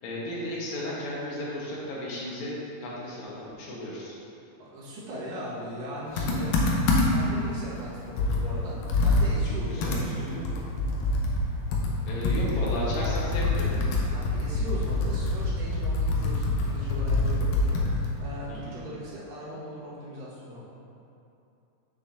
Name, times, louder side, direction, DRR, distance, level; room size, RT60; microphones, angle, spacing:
voice 1, 0.0-4.2 9.4-10.0 12.0-13.7 18.5-18.7, left 1 dB, 65° left, -5 dB, 2.4 m, -34 dB
voice 2, 4.6-6.6 7.1-8.8 9.0-10.6 14.1-20.6, equal, 85° right, -8 dB, 3.1 m, -39 dB
Computer keyboard, 6.2-7.3 7.8-7.9 8.2-11.5 11.7-18.2, left 2 dB, 80° left, 2.4 m, -25 dB
7.6 x 6.5 x 2.6 m, 2.7 s
omnidirectional pair, 3.8 m